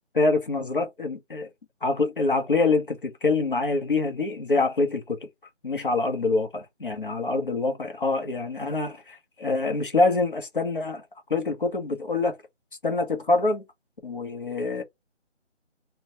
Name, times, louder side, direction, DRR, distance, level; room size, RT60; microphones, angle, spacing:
voice 1, 0.1-1.5 1.8-5.2 5.6-11.0 11.3-12.4 12.8-13.6 14.0-14.8, left 3 dB, 45° left, 0.8 m, -25 dB
2.9 x 2.1 x 2.8 m
figure-of-eight pair, 175°, 35 cm